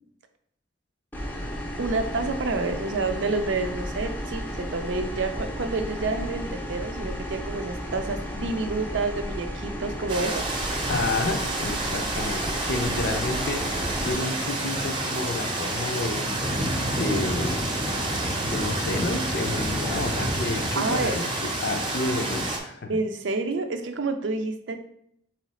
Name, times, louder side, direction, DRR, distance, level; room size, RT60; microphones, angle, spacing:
sound 1, 1.1-14.1, equal, 10° left, 0.5 m, -34 dB
voice 1, 1.8-10.4 20.8-21.1 22.9-24.8, right 3 dB, 85° right, 7 dB, 0.5 m, -28 dB
sound 2, 10.1-22.6, right 1 dB, 25° right, 0.7 m, -28 dB
voice 2, 10.9-13.7 14.1-16.3 16.9-17.7 18.4-23.0, left 2 dB, 60° left, 7 dB, 0.5 m, -30 dB
4.0 x 3.2 x 4.1 m, 0.71 s
head